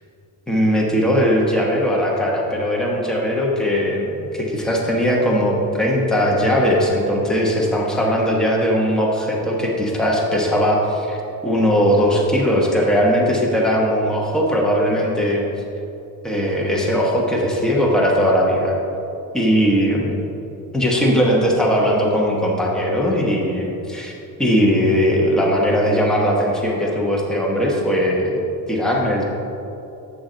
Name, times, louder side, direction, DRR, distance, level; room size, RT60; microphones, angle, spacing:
voice 1, 0.5-11.2 11.4-15.4 16.2-18.8 19.3-20.1 20.7-24.1 24.4-29.2, equal, ahead, -3 dB, 1.1 m, -19 dB
8.7 x 6.0 x 3.9 m, 2.9 s
cardioid pair, 115°, 36 cm